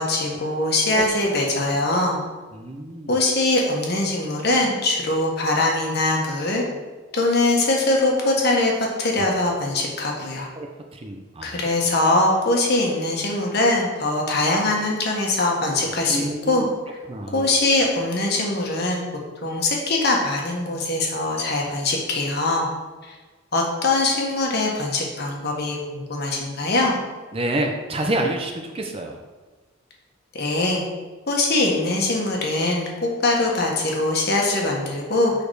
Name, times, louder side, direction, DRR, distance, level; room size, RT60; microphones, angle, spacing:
voice 1, 0.0-2.2 3.1-6.6 7.1-10.5 11.4-17.0 17.3-19.0 19.4-22.7 23.1-23.2 23.5-27.0 30.3-30.8 31.3-35.3, left 2 dB, 50° left, -1 dB, 1.5 m, -22 dB
voice 2, 2.5-3.2 9.2-9.3 10.5-10.7 10.9-11.6 16.1-16.6 17.1-17.5 27.3-29.2, right 1 dB, 30° right, 3 dB, 0.6 m, -28 dB
6.8 x 5.1 x 4.8 m, 1.3 s
head